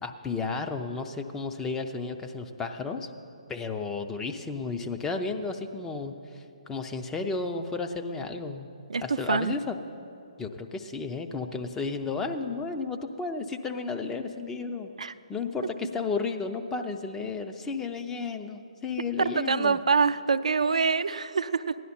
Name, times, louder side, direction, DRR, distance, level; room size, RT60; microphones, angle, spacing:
voice 1, 0.0-3.1 3.5-8.7 9.0-9.8 10.4-14.9 15.3-19.8, left 4 dB, 10° left, 5 dB, 0.5 m, -33 dB
voice 2, 8.9-9.6 15.0-15.1 19.2-21.8, right 5 dB, 70° right, 12 dB, 0.4 m, -25 dB
16.0 x 10.5 x 4.3 m, 2.7 s
figure-of-eight pair, 140°, 4 cm